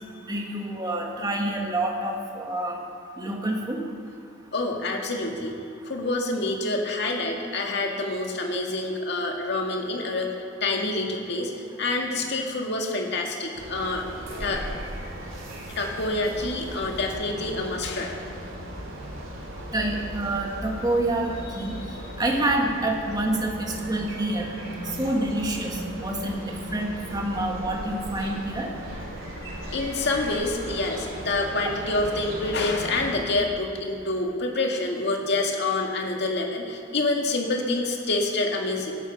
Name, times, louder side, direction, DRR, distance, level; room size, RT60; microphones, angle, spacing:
voice 1, 0.3-2.8 3.2-3.8 19.7-21.8 22.2-24.5 24.9-28.7, right 1 dB, 20° right, 0 dB, 1.9 m, -27 dB
voice 2, 4.5-5.6 5.9-11.5 11.8-14.0 14.4-14.6 15.8-18.1 29.7-39.0, left 2 dB, 60° left, 1 dB, 2.0 m, -27 dB
sound 1, 13.5-33.2, right 1 dB, 75° right, 3.5 m, -37 dB
18.0 x 11.5 x 5.5 m, 2.5 s
head